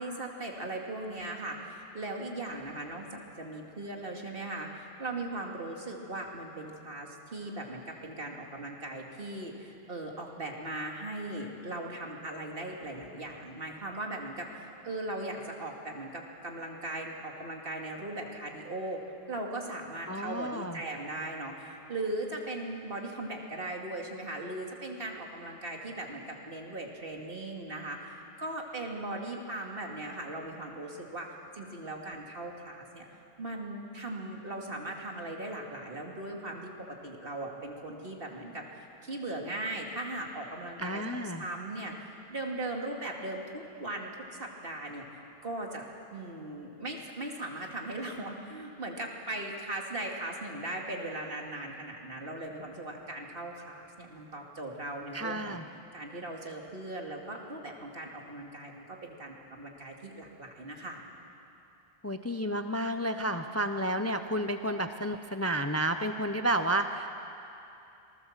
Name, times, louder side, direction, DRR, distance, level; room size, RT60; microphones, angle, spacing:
voice 1, 0.0-19.0 19.3-33.1 33.4-36.7 37.0-38.6 39.0-55.6 55.9-61.0, right 2 dB, 60° right, 0 dB, 2.6 m, -39 dB
voice 2, 20.1-20.8 40.8-41.4 55.1-55.6 62.0-67.1, right 1 dB, 20° left, 7 dB, 0.6 m, -31 dB
26.0 x 20.0 x 7.4 m, 2.8 s
omnidirectional pair, 1.1 m